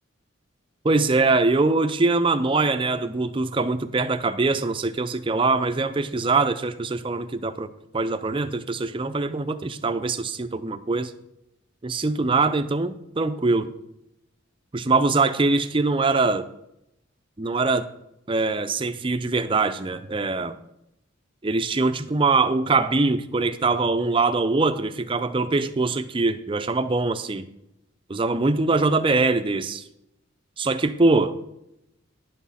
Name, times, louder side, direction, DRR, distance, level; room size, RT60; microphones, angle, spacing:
voice 1, 0.8-7.7 7.9-11.1 11.8-13.7 14.7-16.5 17.4-17.9 18.3-20.6 21.4-27.5 28.1-29.8 30.6-31.4, right 3 dB, 25° right, 10 dB, 0.5 m, -23 dB
11.0 x 6.2 x 5.6 m, 0.83 s
head